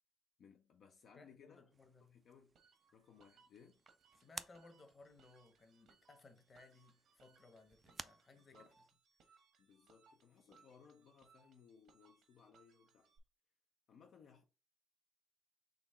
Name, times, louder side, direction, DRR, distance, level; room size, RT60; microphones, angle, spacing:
voice 1, 0.4-1.7 2.0-2.6 2.9-3.8 8.3-8.8 9.6-13.1 13.9-14.4, left 6 dB, 70° left, 0.5 m, -64 dB
voice 2, 1.1-2.1 4.2-8.7, left 3 dB, 35° left, 1.1 m, -62 dB
sound 1, 1.7-8.9, right 5 dB, 35° right, 0.3 m, -57 dB
sound 2, 2.5-13.2, right 5 dB, 75° right, 1.1 m, -71 dB
4.1 x 3.0 x 4.3 m
cardioid pair, 90°, 0 cm